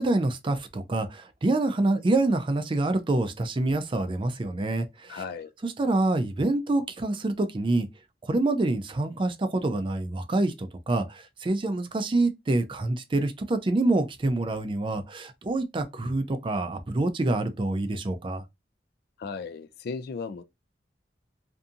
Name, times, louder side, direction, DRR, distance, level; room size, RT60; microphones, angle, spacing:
voice 1, 0.0-5.2 5.6-7.9 8.2-18.4, right 2 dB, 30° right, 0.4 m, -26 dB
voice 2, 5.1-5.5 19.2-20.4, left 5 dB, 60° left, 0.3 m, -35 dB
2.6 x 2.6 x 2.3 m
head